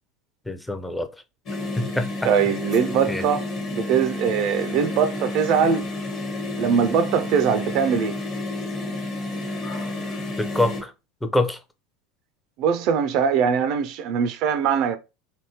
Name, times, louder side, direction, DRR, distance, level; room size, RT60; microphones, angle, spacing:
voice 1, 0.5-1.1 1.8-2.1 3.1-3.2 10.4-10.9 11.2-11.6, left 1 dB, 10° left, 0.5 m, -24 dB
sound 1, 1.5-10.8, left 2 dB, 45° left, 1.1 m, -30 dB
voice 2, 2.2-5.9 6.6-8.2 12.6-15.0, right 7 dB, 55° right, 0.4 m, -22 dB
3.4 x 2.6 x 2.8 m
figure-of-eight pair, 75°, 0 cm